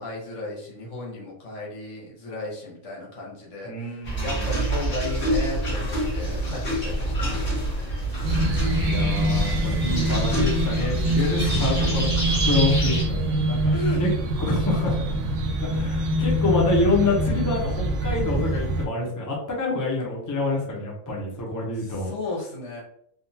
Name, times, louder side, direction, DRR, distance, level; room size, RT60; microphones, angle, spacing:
voice 1, 0.0-7.5 13.7-14.0 21.7-22.8, left 2 dB, 65° left, -3 dB, 1.2 m, -34 dB
voice 2, 3.6-4.4 8.8-14.1 14.4-15.0 15.6-22.1, left 2 dB, 20° left, -3 dB, 0.5 m, -27 dB
sound 1, 4.0-13.0, right 1 dB, 40° left, 1.4 m, -27 dB
sound 2, 8.2-18.9, right 1 dB, 70° right, 0.8 m, -24 dB
3.6 x 2.3 x 2.7 m, 0.69 s
omnidirectional pair, 1.4 m